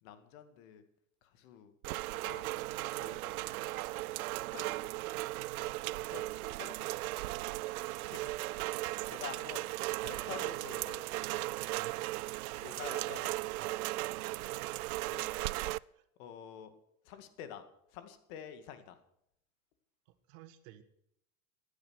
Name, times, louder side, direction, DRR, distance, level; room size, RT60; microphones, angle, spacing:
voice 1, 0.0-0.8 1.2-1.7 2.1-2.7 3.0-3.6 4.4-4.9 5.9-7.1 8.1-8.4 9.1-9.7 10.0-11.2 12.5-13.3 15.1-15.9 16.2-16.7 17.0-17.6 17.9-19.0, left 9 dB, 70° left, 9 dB, 2.3 m, -49 dB
Rain, 1.8-15.8, right 19 dB, 85° right, 0.5 m, -37 dB
voice 2, 11.6-12.0 13.6-13.8 15.9-16.0 20.3-20.8, right 12 dB, 65° right, 8 dB, 1.8 m, -55 dB
15.0 x 9.8 x 6.5 m, 0.74 s
hypercardioid pair, 100°, 42 cm